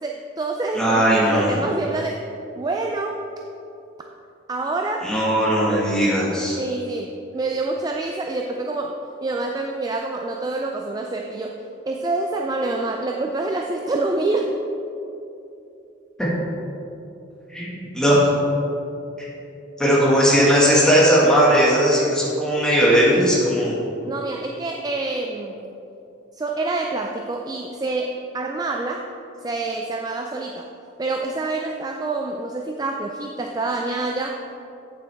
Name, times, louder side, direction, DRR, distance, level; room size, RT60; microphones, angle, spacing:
voice 1, 0.0-2.2 2.6-3.2 4.5-5.1 6.6-14.5 24.0-25.7 26.3-29.1 29.4-30.7 31.0-34.5, right 2 dB, 20° right, 2 dB, 0.3 m, -27 dB
voice 2, 0.7-1.6 5.0-6.6 16.2-16.3 17.5-18.3 19.2-19.3 19.8-23.8, equal, 5° left, -7 dB, 1.8 m, -18 dB
8.5 x 7.3 x 3.5 m, 2.9 s
head